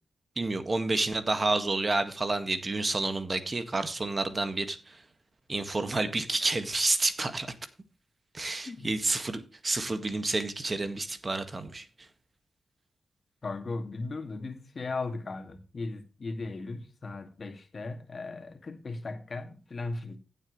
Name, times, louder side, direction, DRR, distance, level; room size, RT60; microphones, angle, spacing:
voice 1, 0.3-5.0 5.5-7.5 8.3-12.1, right 2 dB, 40° right, 1.8 m, -29 dB
voice 2, 8.7-9.0 13.4-20.2, left 3 dB, 50° left, 2.2 m, -37 dB
16.0 x 7.6 x 3.2 m
cardioid pair, 55°, 0 cm